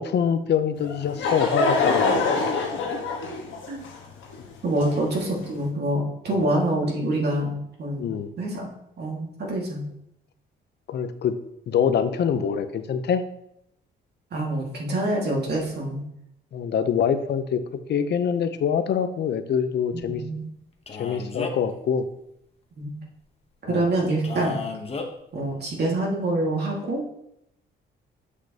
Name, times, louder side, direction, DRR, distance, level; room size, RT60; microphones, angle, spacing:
voice 1, 0.0-2.3 4.8-4.9 6.3-6.5 8.0-8.3 10.9-11.4 11.7-13.2 16.5-17.6 17.9-20.2 20.9-22.1 23.7-23.9, left 7 dB, 60° left, 11 dB, 0.7 m, -25 dB
Laughter / Crowd, 0.8-5.5, left 3 dB, 75° left, 1.4 m, -25 dB
voice 2, 4.6-8.0 8.4-8.7 9.0-9.8 14.3-16.0 20.1-20.5 22.8-22.9 23.6-24.6 25.3-27.0, right 1 dB, 55° right, -3 dB, 2.0 m, -26 dB
Male speech man speaking, 20.9-21.7 24.2-25.1, left 4 dB, 30° left, 1.0 m, -33 dB
7.6 x 6.1 x 2.9 m, 0.77 s
cardioid pair, 90°, 20 cm